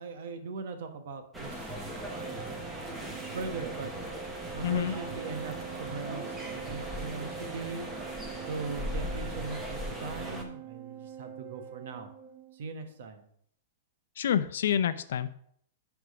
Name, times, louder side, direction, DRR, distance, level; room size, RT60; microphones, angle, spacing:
voice 1, 0.0-3.0 3.3-3.9 4.5-7.9 8.4-12.1 12.5-13.2, right 4 dB, 65° right, 6 dB, 1.3 m, -40 dB
sound 1, 1.3-10.4, equal, 5° right, 1.0 m, -39 dB
Organ, 1.9-12.7, right 9 dB, 25° right, 0.4 m, -44 dB
voice 2, 4.6-4.9 14.2-15.3, left 9 dB, 70° left, 12 dB, 0.5 m, -27 dB
11.0 x 3.6 x 4.8 m, 0.66 s
hypercardioid pair, 155°, 0 cm